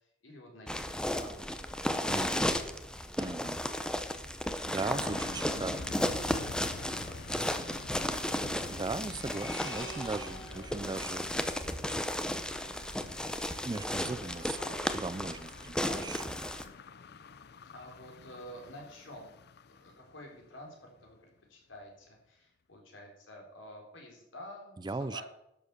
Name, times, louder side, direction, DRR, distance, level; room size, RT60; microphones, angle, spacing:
voice 1, 0.0-2.2 3.5-4.1 5.5-8.3 10.3-10.6 14.0-14.9 15.6-16.1 17.7-19.3 19.7-25.2, left 1 dB, 80° left, 1 dB, 3.7 m, -50 dB
sound 1, 0.7-16.6, left 1 dB, 5° left, 0.7 m, -34 dB
voice 2, 2.1-2.5 3.2-3.6 4.7-5.9 8.7-11.2 13.6-14.6 14.9-16.3 24.8-25.2, right 3 dB, 20° right, 15 dB, 0.4 m, -38 dB
sound 2, 4.8-20.7 21.0-21.1, left 4 dB, 55° left, 0.5 m, -48 dB
sound 3, 8.9-12.2, right 1 dB, 25° left, 3.2 m, -48 dB
11.5 x 7.5 x 6.7 m, 0.84 s
head